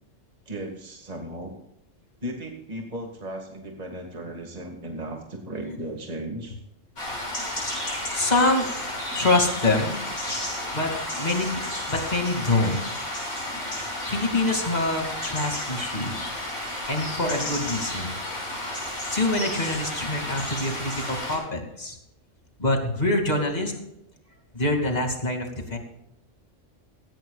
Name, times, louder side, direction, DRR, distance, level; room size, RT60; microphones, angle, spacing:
voice 1, 0.5-1.5 2.2-6.6, right 1 dB, 30° right, 1 dB, 2.2 m, -36 dB
sound 1, 7.0-21.4, left 1 dB, 70° left, 7.0 m, -32 dB
voice 2, 8.1-8.7 9.2-10.0 10.7-11.6 11.9-12.8 14.1-16.3 16.9-18.1 19.1-22.0 22.6-23.7 24.5-25.8, left 2 dB, 35° left, 3 dB, 2.7 m, -25 dB
17.0 x 17.0 x 2.4 m, 0.81 s
omnidirectional pair, 1.3 m